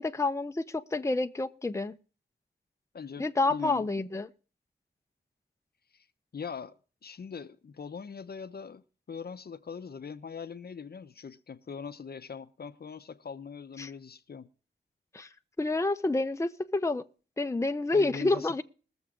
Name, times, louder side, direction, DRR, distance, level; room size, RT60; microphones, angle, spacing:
voice 1, 0.0-1.9 3.2-4.3 13.8-13.9 15.1-17.0 17.4-18.6, left 2 dB, 15° left, 0.6 m, -29 dB
voice 2, 2.9-3.9 5.9-6.1 6.3-6.7 7.0-14.5 17.9-18.6, left 6 dB, 55° left, 0.8 m, -41 dB
21.0 x 7.1 x 3.8 m
wide cardioid pair, 100°, 20 cm